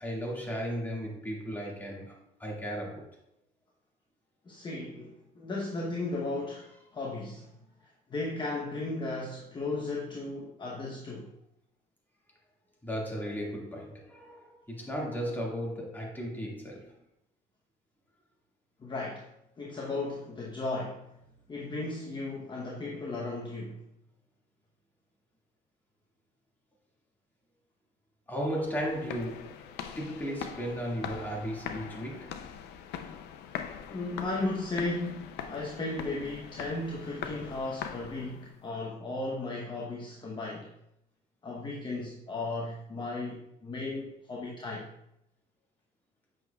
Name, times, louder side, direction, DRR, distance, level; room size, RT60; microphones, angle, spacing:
voice 1, 0.0-3.2 12.8-16.9 28.3-29.7 30.0-32.3, equal, 10° left, -3 dB, 1.9 m, -35 dB
voice 2, 4.5-7.5 8.1-11.3 18.8-19.3 19.6-21.1 21.5-23.8 33.9-40.7 41.4-44.9, left 2 dB, 25° left, -2 dB, 0.9 m, -35 dB
sound 1, 28.5-38.6, left 8 dB, 80° left, 0.5 m, -42 dB
7.8 x 6.0 x 2.3 m, 0.80 s
cardioid pair, 110°, 17 cm